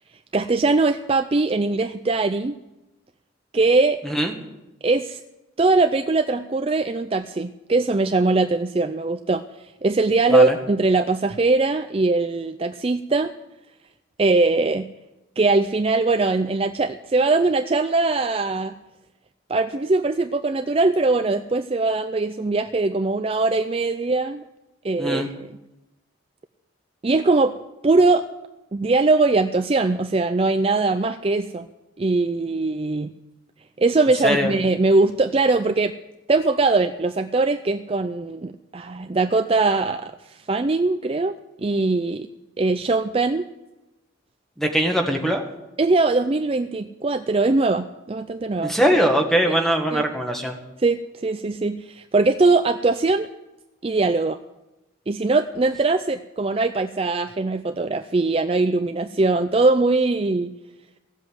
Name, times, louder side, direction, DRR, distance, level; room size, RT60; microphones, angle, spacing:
voice 1, 0.3-2.6 3.5-4.0 4.8-5.2 5.6-9.4 9.8-13.3 14.2-14.9 15.4-18.7 19.5-24.4 24.8-25.5 27.0-27.5 27.8-28.2 28.7-31.7 32.0-33.1 33.8-35.9 36.3-41.3 41.6-42.3 42.6-43.5 45.8-48.7 49.5-49.6 49.9-50.0 50.8-53.3 53.8-54.4 55.1-60.5, right 3 dB, 30° right, 9 dB, 0.4 m, -21 dB
voice 2, 44.6-45.4 48.6-50.6, equal, ahead, 3 dB, 1.7 m, -21 dB
16.5 x 7.8 x 9.4 m, 0.99 s
head